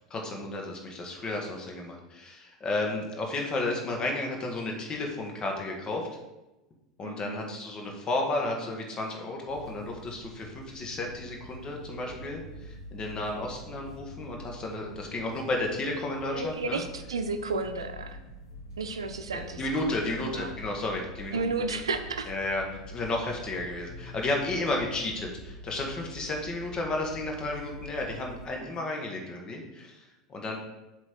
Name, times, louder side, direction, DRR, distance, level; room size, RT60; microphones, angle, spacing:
voice 1, 0.1-6.1 7.0-16.8 19.3-21.5 22.3-30.6, left 2 dB, 30° left, 1 dB, 1.6 m, -33 dB
voice 2, 7.0-7.5 16.3-18.2 18.8-19.6 19.9-20.5 21.3-22.3, right 3 dB, 75° right, 7 dB, 0.7 m, -33 dB
sound 1, 9.5-28.5, equal, 70° left, 1.2 m, -45 dB
7.8 x 3.2 x 6.1 m, 1.0 s
figure-of-eight pair, 80°, 3 cm